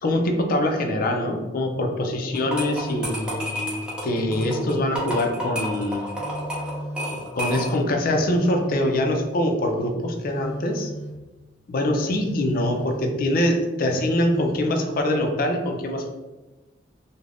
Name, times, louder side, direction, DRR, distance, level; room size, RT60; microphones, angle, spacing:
voice 1, 0.0-3.8 4.0-6.1 7.1-10.9 11.7-16.1, left 1 dB, 50° left, 3 dB, 0.4 m, -24 dB
sound 1, 2.3-7.9, equal, 5° right, 0.6 m, -31 dB
Telephone, 2.8-3.3 4.1-5.3 6.1-7.3 8.1-9.3 10.1-11.2 12.1-13.4 14.1-14.7, equal, 85° left, 0.7 m, -36 dB
2.4 x 2.1 x 3.3 m, 1.1 s
head